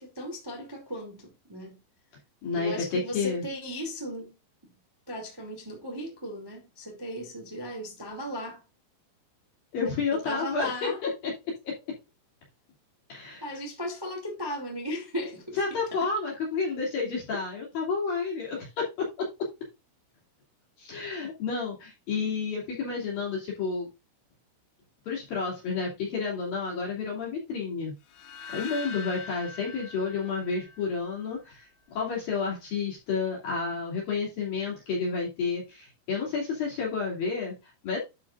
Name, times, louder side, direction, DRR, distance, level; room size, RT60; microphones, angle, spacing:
voice 1, 0.0-1.8 2.5-4.3 5.1-8.6 9.8-11.0 13.4-15.6 15.9-16.0, equal, 10° right, 1.1 m, -36 dB
voice 2, 2.4-3.5 9.7-11.3 11.6-11.7 13.1-13.6 15.5-19.5 20.8-23.9 25.1-27.9 28.5-38.0, left 5 dB, 50° left, 4.0 m, -30 dB
sound 1, 28.1-31.3, left 4 dB, 80° left, 3.9 m, -42 dB
12.0 x 6.2 x 2.5 m
omnidirectional pair, 5.8 m